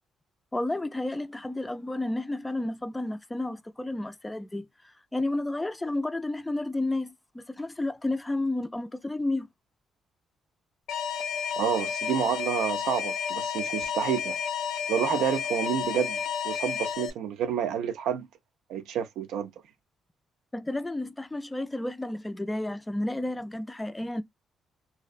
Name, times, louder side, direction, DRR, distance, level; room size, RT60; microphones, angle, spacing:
voice 1, 0.5-9.5 20.5-24.2, left 2 dB, 10° left, 0.3 m, -31 dB
Alarm, 10.9-17.1, left 7 dB, 85° left, 0.4 m, -31 dB
voice 2, 11.6-14.4 14.9-16.2 16.4-18.3 18.7-19.5, right 9 dB, 90° right, 0.3 m, -29 dB
2.5 x 2.0 x 2.4 m
cardioid pair, 90°, 0 cm